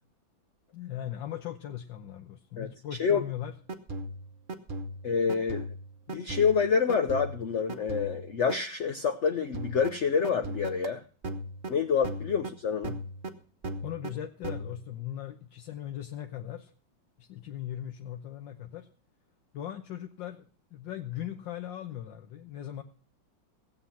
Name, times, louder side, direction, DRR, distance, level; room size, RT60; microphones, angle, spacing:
voice 1, 0.7-3.5 12.3-12.4 13.8-16.7 17.2-18.9 19.5-22.8, left 11 dB, 75° left, 5 dB, 1.6 m, -39 dB
sound 1, 3.5-8.5 9.5-11.7 12.0-12.5 12.8-13.3 13.6-14.1 14.4-14.9, right 1 dB, 35° right, 0.9 m, -37 dB
voice 2, 5.0-5.7 6.1-11.0 11.7-13.0, left 6 dB, 55° left, 7 dB, 0.8 m, -27 dB
17.0 x 7.9 x 5.8 m, 0.39 s
omnidirectional pair, 2.1 m